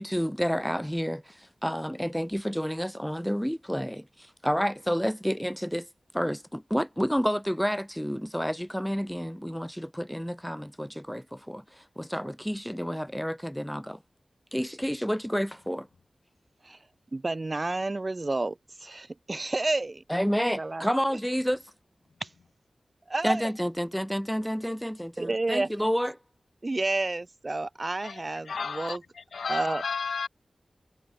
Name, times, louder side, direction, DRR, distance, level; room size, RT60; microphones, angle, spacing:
voice 1, 0.0-5.9 6.1-14.0 14.5-15.9 20.1-21.6 23.2-26.2, equal, ahead, 1.0 m, -30 dB
voice 2, 17.1-20.0 20.5-20.9 22.2-22.3 23.1-23.5 25.2-25.7 26.6-29.0 29.5-29.8, right 2 dB, 40° right, 2.3 m, -30 dB
voice 3, 28.0-30.3, left 5 dB, 90° left, 5.9 m, -34 dB
cardioid pair, 45°, 0 cm